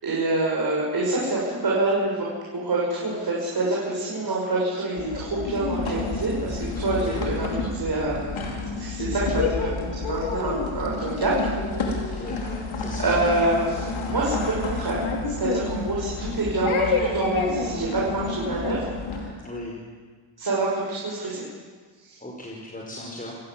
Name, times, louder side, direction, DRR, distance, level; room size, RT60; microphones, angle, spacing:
voice 1, 0.0-2.2 2.5-11.5 11.9-12.3 12.9-19.5 20.4-21.5 22.0-22.2, right 2 dB, 45° right, -4 dB, 6.9 m, -27 dB
sound 1, 5.0-19.3, left 3 dB, 70° left, 4.4 m, -29 dB
voice 2, 6.9-7.2 12.1-12.4 12.7-13.1 19.4-19.7 22.2-23.3, left 1 dB, 15° left, -3 dB, 5.2 m, -37 dB
28.5 x 16.0 x 7.7 m, 1.5 s
cardioid pair, 90°, 50 cm